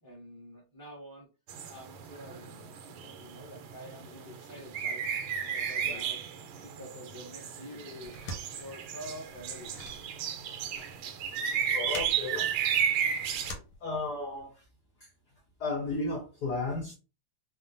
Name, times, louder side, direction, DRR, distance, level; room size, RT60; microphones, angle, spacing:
voice 1, 0.0-1.3 1.7-5.0 5.5-6.2 6.6-8.2 8.5-9.9, equal, 20° right, 0.5 m, -47 dB
sound 1, 1.5-13.5, right 8 dB, 80° right, 1.4 m, -33 dB
sound 2, 8.0-14.4, left 1 dB, 90° left, 1.7 m, -46 dB
voice 2, 11.7-12.5 13.8-14.5 15.6-16.9, left 3 dB, 70° left, 0.9 m, -34 dB
3.6 x 2.1 x 2.5 m
omnidirectional pair, 2.4 m